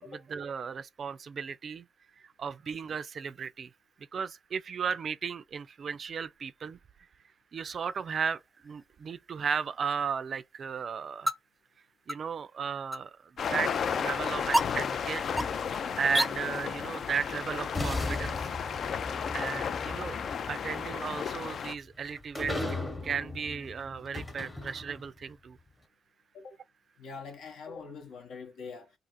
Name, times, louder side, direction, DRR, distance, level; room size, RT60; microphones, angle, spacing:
voice 1, 0.0-1.9 2.2-3.7 4.1-6.8 7.5-11.3 12.1-15.2 15.7-18.5 19.3-20.2 20.5-22.8 23.0-25.6, right 6 dB, 50° right, 0.3 m, -35 dB
sound 1, 7.6-16.3, equal, 5° left, 0.5 m, -37 dB
sound 2, 13.4-21.7, left 7 dB, 55° left, 0.3 m, -33 dB
sound 3, 13.6-16.0 17.2-17.3 17.7-25.2, left 2 dB, 20° left, 0.9 m, -38 dB
voice 2, 27.0-28.9, left 5 dB, 75° left, 0.8 m, -44 dB
2.4 x 2.4 x 4.1 m
cardioid pair, 90°, 0 cm